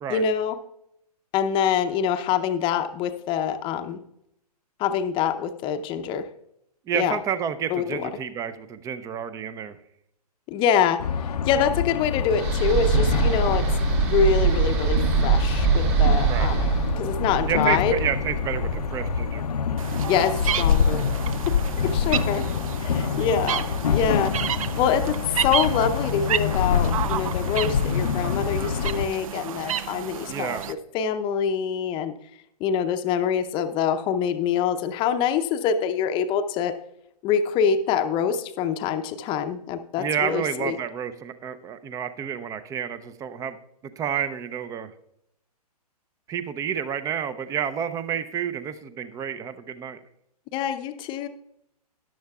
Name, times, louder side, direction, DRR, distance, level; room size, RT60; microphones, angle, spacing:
voice 1, 0.1-0.6 1.3-4.0 4.8-6.3 6.9-7.2 7.7-8.1 10.5-13.7 14.1-16.6 17.0-18.0 20.1-21.1 21.8-22.5 22.8-24.3 24.7-32.1 32.6-36.8 37.2-40.8 50.5-51.3, left 7 dB, 25° left, 9 dB, 0.7 m, -25 dB
voice 2, 6.9-9.8 16.3-16.5 17.5-19.4 30.3-30.7 40.0-43.6 44.0-44.9 46.3-50.0, right 8 dB, 15° right, 13 dB, 0.6 m, -29 dB
sound 1, 11.0-29.1, left 6 dB, 75° left, 0.7 m, -26 dB
sound 2, 12.3-19.5, right 7 dB, 40° right, 2.3 m, -24 dB
sound 3, 19.8-30.7, right 9 dB, 60° right, 0.6 m, -31 dB
13.5 x 10.5 x 2.4 m, 0.78 s
hypercardioid pair, 125°, 20 cm